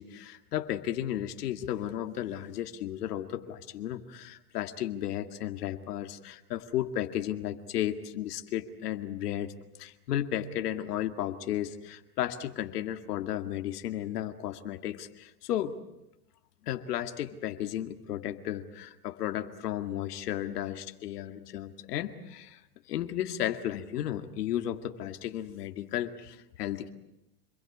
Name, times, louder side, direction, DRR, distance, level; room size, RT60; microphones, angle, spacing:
voice 1, 0.0-9.5 9.8-15.8 16.6-22.6 22.9-26.9, left 11 dB, 75° left, 7 dB, 2.2 m, -34 dB
27.5 x 22.0 x 8.6 m, 0.87 s
supercardioid pair, 140°, 47 cm